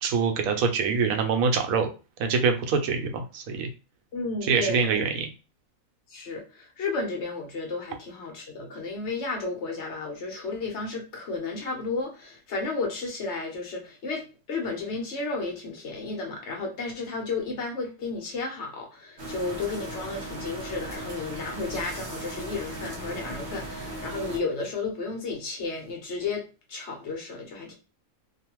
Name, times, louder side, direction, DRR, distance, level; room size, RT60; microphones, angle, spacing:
voice 1, 0.0-1.9 2.2-3.7 4.4-5.3, right 5 dB, 85° right, 1.0 m, -25 dB
voice 2, 4.1-5.0 6.1-27.7, left 3 dB, 55° left, 1.0 m, -33 dB
sound 1, 19.2-24.4, right 1 dB, 40° right, 0.7 m, -37 dB
2.6 x 2.4 x 2.9 m
omnidirectional pair, 1.4 m